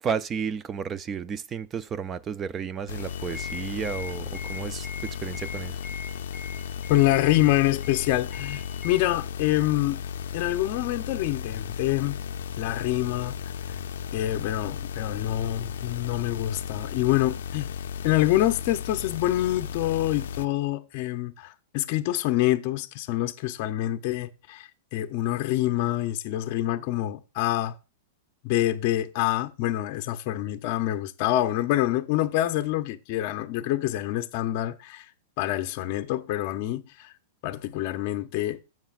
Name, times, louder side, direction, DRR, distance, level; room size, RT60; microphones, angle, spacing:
voice 1, 0.0-5.8, right 7 dB, 15° right, 0.3 m, -32 dB
sound 1, 2.9-20.5, left 8 dB, 80° left, 0.5 m, -35 dB
sound 2, 3.1-9.0, left 5 dB, ahead, 1.6 m, -42 dB
voice 2, 6.9-10.0 10.3-12.2 12.6-13.3 13.7-13.8 14.1-17.7 18.0-27.7 28.4-35.1 35.4-37.1 37.4-38.6, left 15 dB, 35° left, 0.6 m, -26 dB
15.0 x 5.9 x 2.4 m
supercardioid pair, 175°, 0 cm